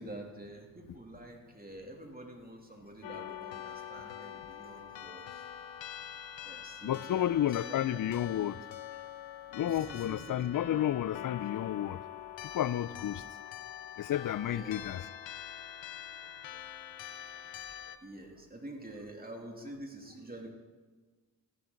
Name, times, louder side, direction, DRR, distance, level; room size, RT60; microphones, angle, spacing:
voice 1, 0.0-5.4 6.4-7.8 9.7-10.5 14.4-14.9 17.5-17.6 18.0-20.5, right 1 dB, 20° right, 2.9 m, -47 dB
sound 1, 3.0-18.0, left 10 dB, 70° left, 0.9 m, -44 dB
voice 2, 6.8-8.6 9.5-12.0 12.4-13.2 14.0-15.1, left 11 dB, 45° left, 0.5 m, -31 dB
14.5 x 12.0 x 4.0 m
supercardioid pair, 40°, 46 cm